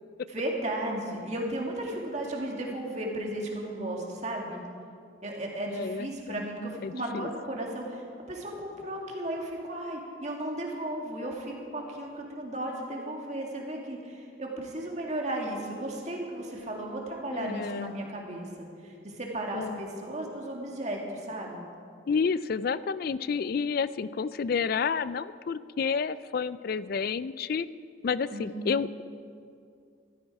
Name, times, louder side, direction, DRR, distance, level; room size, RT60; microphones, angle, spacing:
voice 1, 0.3-4.6 5.2-21.7 28.3-28.8, right 1 dB, 35° right, -1 dB, 2.0 m, -35 dB
voice 2, 5.7-6.4 6.8-7.3 17.3-17.9 19.5-19.8 22.1-27.7 28.0-28.9, left 5 dB, 45° left, 16 dB, 0.3 m, -30 dB
14.5 x 13.0 x 4.8 m, 2.4 s
head